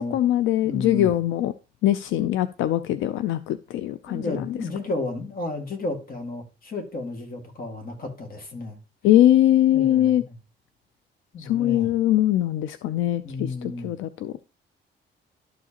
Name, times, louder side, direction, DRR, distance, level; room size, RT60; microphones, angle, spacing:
voice 1, 0.0-1.5 1.8-4.5 9.0-10.2 11.4-14.3, left 13 dB, 80° left, 0.4 m, -22 dB
voice 2, 0.6-1.1 4.1-8.8 9.7-10.3 11.3-11.9 13.2-13.9, left 2 dB, 45° left, 2.1 m, -32 dB
12.0 x 4.8 x 2.9 m
cardioid pair, 90°, 20 cm